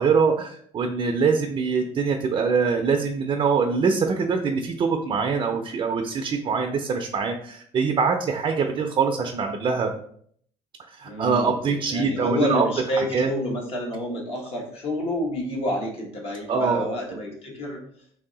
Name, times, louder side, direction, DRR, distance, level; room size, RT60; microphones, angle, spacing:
voice 1, 0.0-9.9 10.9-12.7 13.0-13.3 16.5-16.9, right 5 dB, 40° right, 3 dB, 0.4 m, -23 dB
voice 2, 11.0-17.8, left 1 dB, 50° left, -1 dB, 1.3 m, -29 dB
3.1 x 2.7 x 3.7 m, 0.62 s
supercardioid pair, 95°, 13 cm